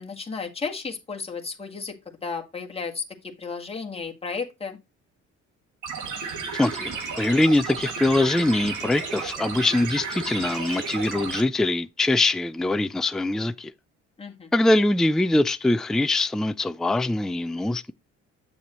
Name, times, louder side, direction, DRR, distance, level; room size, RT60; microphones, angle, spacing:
voice 1, 0.0-2.0 2.2-4.8 14.2-14.5, left 4 dB, 20° left, 1.8 m, -33 dB
sound 1, 5.8-11.4, right 5 dB, 80° right, 2.2 m, -33 dB
voice 2, 6.5-13.7 14.5-17.9, left 2 dB, ahead, 0.4 m, -23 dB
7.7 x 7.0 x 3.0 m
cardioid pair, 90°, 30 cm